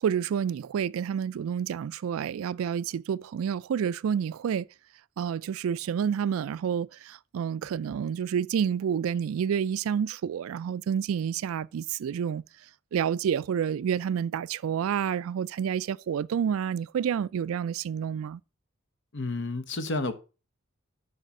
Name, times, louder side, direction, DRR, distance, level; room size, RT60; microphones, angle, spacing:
voice 1, 0.0-4.7 5.2-12.4 12.9-18.4, right 8 dB, 75° right, 0.3 m, -29 dB
voice 2, 19.1-20.1, left 2 dB, 60° left, 1.0 m, -30 dB
6.6 x 5.5 x 5.9 m
head